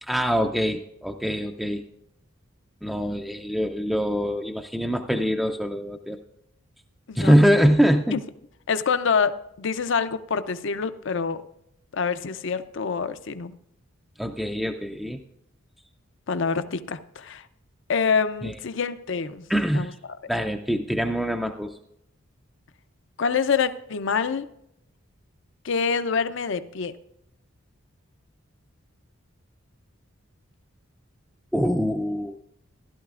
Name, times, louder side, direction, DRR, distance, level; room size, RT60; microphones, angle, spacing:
voice 1, 0.0-1.8 2.8-6.2 7.1-8.2 14.2-15.2 18.4-18.6 19.5-20.0 20.3-21.8 31.5-32.4, equal, ahead, 4 dB, 0.4 m, -23 dB
voice 2, 8.7-11.4 11.9-13.5 16.3-17.4 17.9-19.4 19.7-19.9 23.2-24.4 25.6-26.9, left 5 dB, 60° left, 12 dB, 0.5 m, -26 dB
15.0 x 12.0 x 2.4 m, 0.78 s
head